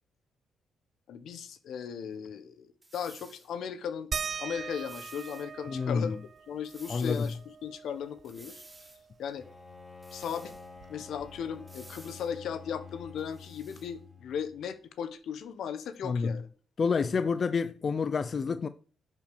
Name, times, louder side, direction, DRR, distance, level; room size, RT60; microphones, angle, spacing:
voice 1, 1.1-6.2 6.5-8.6 9.2-9.5 10.1-10.5 10.9-16.5, left 7 dB, 70° left, 1.2 m, -37 dB
sound 1, 2.8-3.5 4.7-5.5 6.6-7.4 8.2-9.0 10.0-10.7 11.7-12.3 13.2-13.9, right 2 dB, 15° right, 2.8 m, -53 dB
sound 2, 4.1-9.2 9.6-9.7 10.0-11.8 13.0-13.1 13.9-14.0, right 6 dB, 45° right, 0.4 m, -42 dB
voice 2, 5.7-6.1 6.9-7.3 16.0-16.4 16.8-18.7, left 5 dB, 40° left, 0.5 m, -28 dB
Bowed string instrument, 9.4-14.7, left 5 dB, 15° left, 4.7 m, -49 dB
10.5 x 5.0 x 6.9 m
cardioid pair, 90°, 0 cm